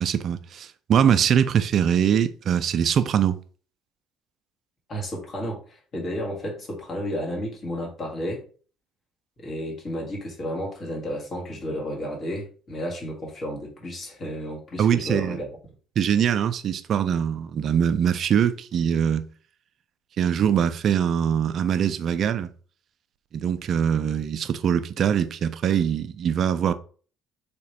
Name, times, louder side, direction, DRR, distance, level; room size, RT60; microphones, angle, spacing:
voice 1, 0.0-3.4 14.8-15.4 16.0-19.3 20.2-22.5 23.3-26.7, right 8 dB, 55° right, 0.3 m, -22 dB
voice 2, 4.9-8.4 9.4-15.5, equal, 45° left, 1.4 m, -32 dB
3.3 x 2.8 x 2.9 m
hypercardioid pair, 60°, 0 cm